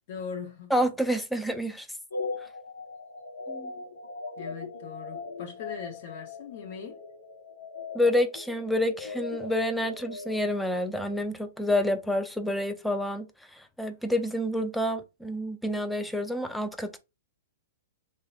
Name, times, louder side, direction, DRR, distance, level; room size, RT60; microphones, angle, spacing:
voice 1, 0.1-0.7 4.4-7.0, left 6 dB, 55° left, 0.7 m, -40 dB
voice 2, 0.7-1.9 3.5-3.7 7.9-13.3 13.5-17.0, left 1 dB, 5° left, 0.3 m, -28 dB
sound 1, 2.1-11.3, left 3 dB, 85° left, 0.8 m, -40 dB
2.9 x 2.1 x 2.3 m
hypercardioid pair, 130°, 0 cm